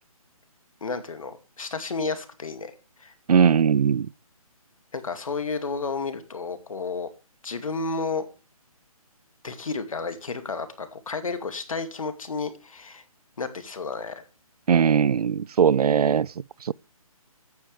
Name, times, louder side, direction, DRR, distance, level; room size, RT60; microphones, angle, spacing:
voice 1, 0.8-2.7 3.0-3.1 4.9-7.1 7.4-8.3 9.4-13.0 13.4-14.2, left 4 dB, 65° left, 2.3 m, -32 dB
voice 2, 3.3-4.1 14.7-16.3 16.6-16.7, right 7 dB, 90° right, 0.5 m, -19 dB
15.0 x 10.5 x 3.4 m
hypercardioid pair, 180°, 19 cm